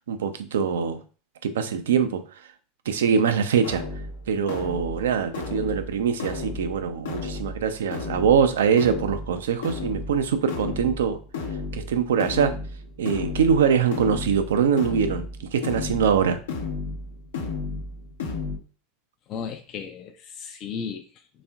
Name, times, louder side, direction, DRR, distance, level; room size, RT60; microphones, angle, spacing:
voice 1, 0.1-1.0 1.4-2.2 2.9-3.8 4.3-11.2 11.7-12.6 13.0-16.4, right 7 dB, 75° right, 10 dB, 0.4 m, -23 dB
sound 1, 3.6-18.6, left 3 dB, 75° left, 0.8 m, -33 dB
voice 2, 19.3-21.4, left 6 dB, 45° left, 5 dB, 0.4 m, -35 dB
4.1 x 3.4 x 2.3 m, 0.37 s
hypercardioid pair, 85°, 0 cm